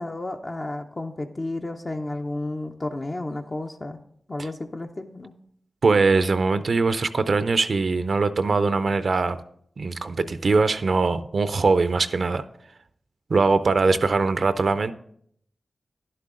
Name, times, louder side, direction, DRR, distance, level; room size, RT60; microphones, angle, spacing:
voice 1, 0.0-4.0 4.3-5.3, left 2 dB, 40° left, 3 dB, 0.6 m, -32 dB
voice 2, 5.8-9.4 9.8-12.4 13.3-14.9, right 4 dB, 65° right, 12 dB, 0.5 m, -21 dB
11.0 x 7.6 x 3.7 m, 0.66 s
cardioid pair, 50°, 0 cm